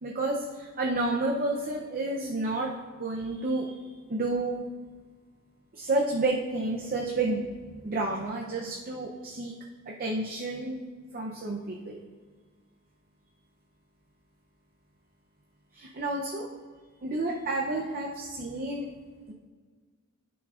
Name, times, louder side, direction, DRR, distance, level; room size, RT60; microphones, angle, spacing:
voice 1, 0.0-3.7 4.1-4.6 5.7-7.4 7.8-9.5 9.9-10.8 11.1-12.0 15.7-16.5 17.0-18.9 19.3-19.4, right 2 dB, 40° right, -1 dB, 0.6 m, -30 dB
11.5 x 6.2 x 2.4 m, 1.5 s
head